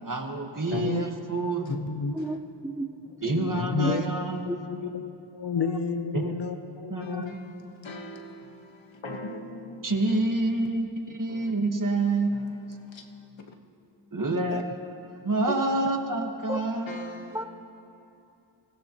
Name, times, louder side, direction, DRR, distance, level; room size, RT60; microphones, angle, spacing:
voice 1, 0.0-1.8 3.2-4.5 4.7-4.9 6.1-6.3 6.9-8.1 9.8-12.8 14.1-17.3, right 2 dB, 45° right, 3 dB, 1.5 m, -28 dB
voice 2, 0.7-1.1 1.7-2.2 3.2-4.0 4.3-7.3, left 5 dB, 65° left, 7 dB, 0.9 m, -31 dB
voice 3, 2.1-2.9 3.8-4.0 4.5-4.6 7.0-7.2 14.4-14.6 16.5-16.6 17.3-17.4, right 1 dB, 5° right, 7 dB, 0.7 m, -33 dB
voice 4, 7.0-7.5 7.8-9.8 11.3-11.4 12.9-13.0 14.5-14.6 16.9-17.4, left 1 dB, 90° left, 3 dB, 1.4 m, -40 dB
25.5 x 16.5 x 3.0 m, 2.7 s
wide cardioid pair, 80°, 44 cm